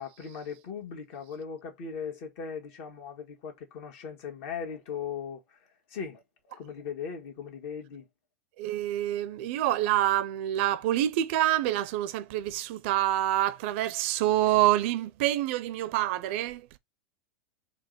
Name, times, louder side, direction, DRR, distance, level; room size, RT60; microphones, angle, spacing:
voice 1, 0.0-5.4 5.9-8.0, left 6 dB, 55° left, 1.4 m, -38 dB
voice 2, 8.6-16.8, right 13 dB, 60° right, 0.5 m, -27 dB
4.3 x 2.2 x 3.9 m
hypercardioid pair, 100°, 7 cm